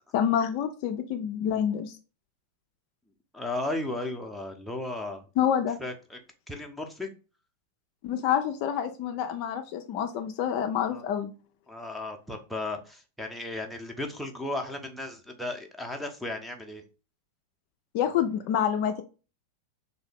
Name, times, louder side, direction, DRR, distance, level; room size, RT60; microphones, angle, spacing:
voice 1, 0.1-1.9 5.4-5.8 8.0-11.3 17.9-19.0, left 9 dB, 45° left, 6 dB, 0.4 m, -27 dB
voice 2, 3.3-5.2 5.8-6.2 6.5-7.1 10.9-11.0 11.7-16.8, left 2 dB, ahead, 1 dB, 0.7 m, -35 dB
3.6 x 2.6 x 3.4 m, 0.34 s
figure-of-eight pair, 90°, 0 cm